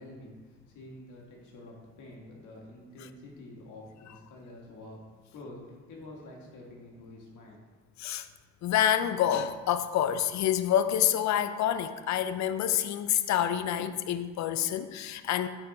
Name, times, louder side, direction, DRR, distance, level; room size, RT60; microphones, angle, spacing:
voice 1, 0.0-5.0 5.3-7.6, left 1 dB, 80° left, -1 dB, 1.8 m, -48 dB
voice 2, 8.6-15.5, left 10 dB, 65° left, 11 dB, 0.5 m, -27 dB
8.6 x 4.5 x 4.2 m, 1.4 s
cardioid pair, 90°, 30 cm